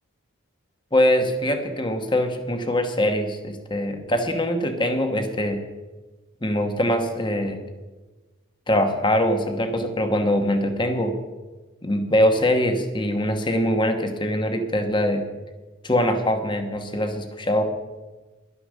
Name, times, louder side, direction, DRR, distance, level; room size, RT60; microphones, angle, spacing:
voice 1, 0.9-5.6 6.4-7.6 8.7-11.1 11.8-15.2 15.8-17.6, left 1 dB, 20° left, 6 dB, 1.1 m, -23 dB
11.5 x 9.9 x 6.4 m, 1.2 s
head